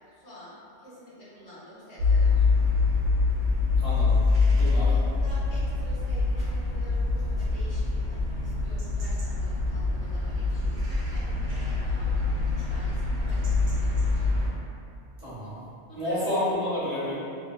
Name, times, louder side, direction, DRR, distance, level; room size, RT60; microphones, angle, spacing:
voice 1, 0.0-2.4 4.5-14.4 15.8-16.3, equal, 65° left, -9 dB, 1.0 m, -47 dB
sound 1, 2.0-14.5, left 3 dB, 80° right, 1.0 m, -25 dB
voice 2, 3.8-4.2 4.5-4.9 15.2-15.6 15.9-17.1, left 1 dB, 40° right, -13 dB, 0.6 m, -30 dB
2.6 x 2.4 x 2.3 m, 2.5 s
omnidirectional pair, 1.3 m